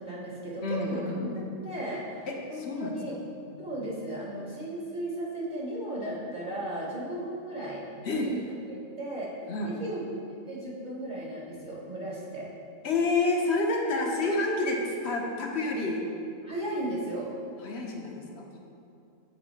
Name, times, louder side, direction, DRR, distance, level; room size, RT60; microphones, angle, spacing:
voice 1, 0.0-3.1 3.6-7.8 8.2-9.3 9.6-10.2 10.5-12.5 13.9-14.3 16.4-17.3, right 1 dB, 35° right, -6 dB, 1.1 m, -36 dB
voice 2, 0.6-1.4 2.3-3.0 3.5-3.7 8.0-8.3 9.5-9.8 12.8-16.0 17.6-18.6, left 3 dB, 55° left, 0 dB, 1.0 m, -29 dB
8.8 x 4.0 x 4.1 m, 2.6 s
omnidirectional pair, 1.4 m